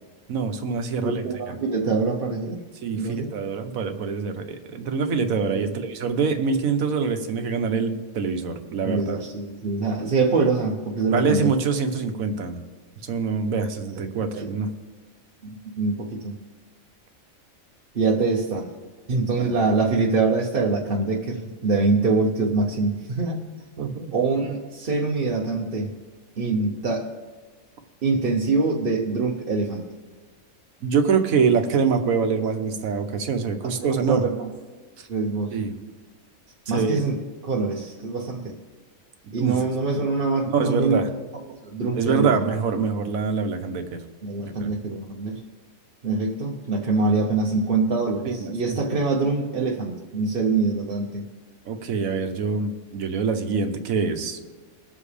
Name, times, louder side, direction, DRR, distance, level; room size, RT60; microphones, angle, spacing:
voice 1, 0.3-1.5 2.8-9.2 11.1-12.6 13.0-14.7 19.4-19.5 23.8-24.1 30.8-34.2 35.5-35.7 36.7-37.0 39.4-39.6 40.5-41.1 41.9-44.0 44.4-44.7 48.2-48.8 51.6-54.4, right 5 dB, 80° right, 7 dB, 1.4 m, -25 dB
voice 2, 1.0-2.6 2.9-3.3 5.5-5.7 8.8-11.5 14.1-14.7 15.4-16.3 17.9-18.7 19.1-23.4 24.1-25.9 26.4-27.1 28.0-29.9 33.6-34.5 35.1-35.6 36.7-37.2 37.4-38.5 39.3-41.1 41.6-42.4 44.2-45.4 46.0-51.2, right 3 dB, 45° right, -1 dB, 1.0 m, -24 dB
21.5 x 7.4 x 3.4 m, 1.3 s
omnidirectional pair, 1.4 m